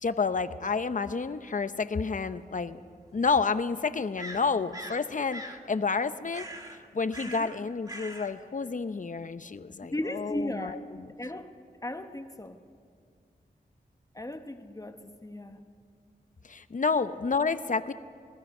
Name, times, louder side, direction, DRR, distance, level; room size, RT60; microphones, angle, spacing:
voice 1, 0.0-2.8 3.1-6.5 6.9-11.1 16.5-17.9, left 4 dB, 55° left, 12 dB, 0.8 m, -30 dB
sound 1, 4.2-5.0 5.3-5.6 6.3-6.8 7.1-7.6 7.9-8.3, right 1 dB, 20° right, 1.7 m, -41 dB
voice 2, 9.8-10.8 11.2-11.5 11.8-12.6 14.1-15.6, left 1 dB, 20° left, 6 dB, 1.2 m, -36 dB
25.5 x 19.5 x 5.5 m, 2.1 s
wide cardioid pair, 85°, 16 cm